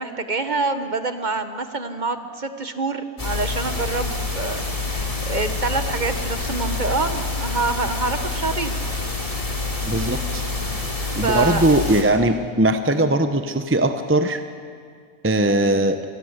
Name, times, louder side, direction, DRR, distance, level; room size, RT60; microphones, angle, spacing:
voice 1, 0.0-8.8 11.2-11.7, right 3 dB, 30° right, 9 dB, 1.2 m, -26 dB
sound 1, 3.2-12.0, left 3 dB, 20° left, 2.9 m, -27 dB
voice 2, 9.8-10.4 11.1-14.4 15.2-16.0, right 1 dB, 15° right, 8 dB, 0.5 m, -20 dB
27.5 x 20.0 x 8.1 m, 2.1 s
omnidirectional pair, 1.7 m